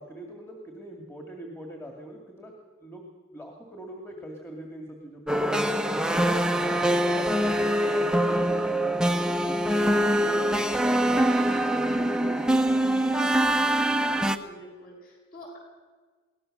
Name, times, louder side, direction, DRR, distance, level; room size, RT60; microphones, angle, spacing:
voice 1, 0.0-2.5 2.8-3.0 3.3-5.6 6.2-9.6 10.1-13.1, right 1 dB, 15° left, 0 dB, 2.3 m, -41 dB
sound 1, 5.3-14.4, right 1 dB, 5° right, 0.8 m, -24 dB
voice 2, 14.0-15.6, equal, 45° left, -1 dB, 8.0 m, -46 dB
22.5 x 18.5 x 6.7 m, 1.4 s
head